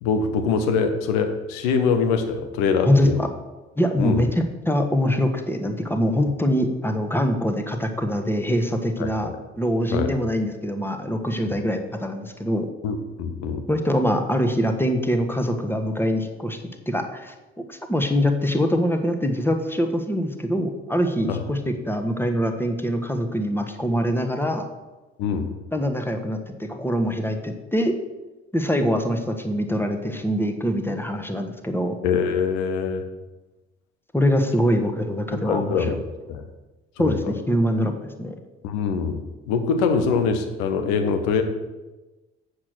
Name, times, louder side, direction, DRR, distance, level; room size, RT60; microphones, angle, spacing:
voice 1, 0.0-3.2 4.0-4.3 9.0-9.4 9.9-10.1 11.5-11.6 12.8-13.6 21.3-21.4 25.2-25.5 32.0-33.1 35.3-36.0 36.3-36.4 37.0-37.1 38.6-41.4, left 5 dB, 70° left, 6 dB, 1.1 m, -24 dB
voice 2, 2.8-3.3 3.8-4.3 4.7-9.3 9.6-12.7 13.7-16.6 16.9-17.3 17.7-24.7 25.7-28.0 28.5-32.0 34.1-36.0 37.0-38.3, equal, 5° left, 5 dB, 1.3 m, -23 dB
7.6 x 6.5 x 6.1 m, 1.1 s
figure-of-eight pair, 45°, 32 cm